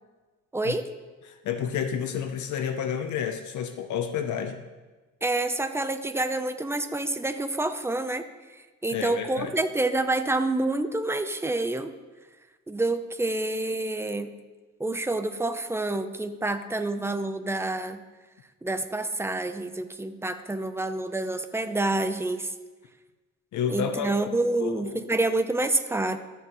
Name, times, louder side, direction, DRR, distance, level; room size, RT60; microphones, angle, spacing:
voice 1, 0.5-0.9 5.2-8.3 8.8-11.9 12.7-14.3 14.8-18.0 18.6-22.5 23.7-26.2, right 2 dB, 10° right, 8 dB, 0.6 m, -28 dB
voice 2, 1.3-4.6 8.9-9.5 23.5-24.1 24.6-25.0, left 8 dB, 75° left, 8 dB, 0.7 m, -30 dB
14.0 x 6.9 x 3.0 m, 1.2 s
cardioid pair, 90°, 30 cm